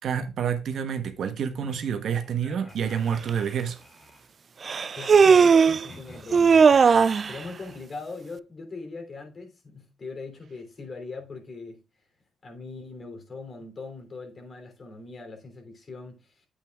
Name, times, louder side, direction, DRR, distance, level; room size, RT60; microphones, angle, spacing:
voice 1, 0.0-3.8, right 7 dB, 65° right, 1.1 m, -28 dB
sound 1, 1.5-4.2 5.2-7.8, left 2 dB, 25° left, 3.8 m, -48 dB
Human voice, 3.3-3.4 4.7-5.9 6.3-7.3, right 5 dB, 40° right, 0.3 m, -17 dB
voice 2, 4.9-7.0 7.2-11.8 12.4-16.5, left 3 dB, 40° left, 3.1 m, -41 dB
8.9 x 8.3 x 2.4 m
cardioid pair, 90°, 0 cm